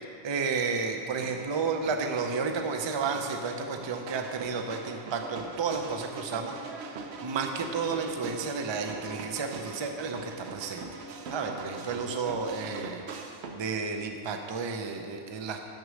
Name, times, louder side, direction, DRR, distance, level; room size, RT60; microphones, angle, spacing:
voice 1, 0.2-10.8 11.3-13.1 13.5-15.6, right 5 dB, 40° right, 4 dB, 0.4 m, -32 dB
sound 1, 1.1-13.7, right 4 dB, 65° right, 0.9 m, -42 dB
6.7 x 6.3 x 6.2 m, 2.7 s
omnidirectional pair, 1.2 m